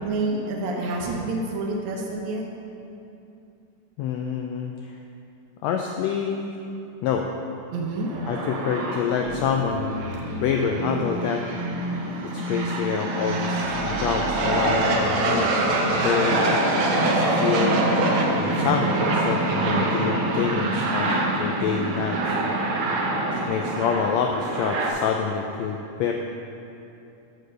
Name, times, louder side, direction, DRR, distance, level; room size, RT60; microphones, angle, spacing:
voice 1, 0.0-2.4 7.7-8.1, right 2 dB, 70° right, -2 dB, 2.1 m, -28 dB
voice 2, 4.0-5.0 5.6-6.6 7.0-7.3 8.2-9.9 10.4-11.4 12.2-15.7 16.0-16.7 17.1-17.8 18.4-22.4 23.3-26.1, left 6 dB, 85° left, 2 dB, 1.5 m, -27 dB
sound 1, 8.0-24.9, right 2 dB, 90° right, 1.1 m, -25 dB
sound 2, 9.2-19.2, equal, 45° right, 2.4 m, -33 dB
6.7 x 6.5 x 6.3 m, 2.7 s
omnidirectional pair, 3.6 m